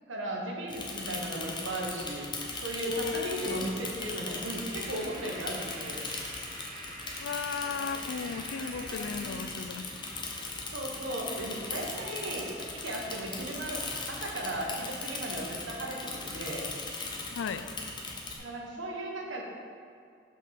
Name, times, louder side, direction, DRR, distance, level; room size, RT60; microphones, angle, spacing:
voice 1, 0.1-2.2 2.6-6.0 7.6-9.5 10.7-16.6 18.4-19.4, right 1 dB, 85° right, -1 dB, 1.2 m, -37 dB
Bicycle / Mechanisms, 0.7-18.4, left 3 dB, 25° left, 0.7 m, -39 dB
voice 2, 2.8-3.6 7.2-9.9 17.3-17.7, left 6 dB, 75° left, 10 dB, 0.4 m, -35 dB
sound 1, 3.4-10.4, right 2 dB, 40° right, 1.1 m, -48 dB
5.9 x 4.6 x 5.8 m, 2.3 s
head